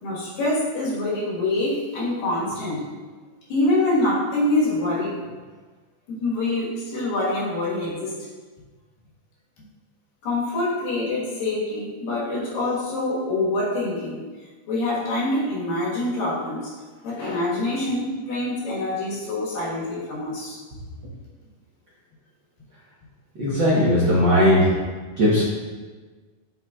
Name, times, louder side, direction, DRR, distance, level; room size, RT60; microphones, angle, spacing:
voice 1, 0.0-2.9 3.5-5.3 6.1-8.1 10.2-14.2 14.7-16.7 17.0-20.6, left 2 dB, 80° left, -5 dB, 3.2 m, -25 dB
voice 2, 23.3-24.7 25.2-25.4, equal, 60° right, -8 dB, 1.2 m, -18 dB
7.9 x 6.4 x 2.4 m, 1.4 s
omnidirectional pair, 4.0 m